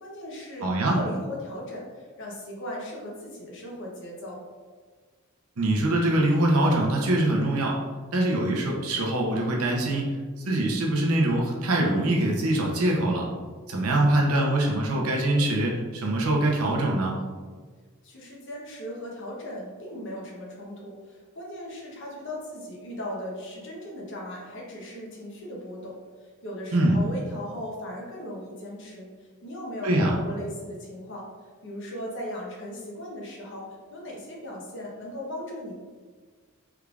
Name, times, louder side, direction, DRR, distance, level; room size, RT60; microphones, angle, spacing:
voice 1, 0.0-4.4 18.0-31.3 31.6-35.8, left 1 dB, 60° left, -3 dB, 0.9 m, -38 dB
voice 2, 0.6-1.0 5.6-7.8 8.1-10.1 10.4-13.3 13.7-17.1 26.7-27.0 29.8-30.1, right 1 dB, 80° right, -1 dB, 0.7 m, -23 dB
3.6 x 3.3 x 2.4 m, 1.5 s
head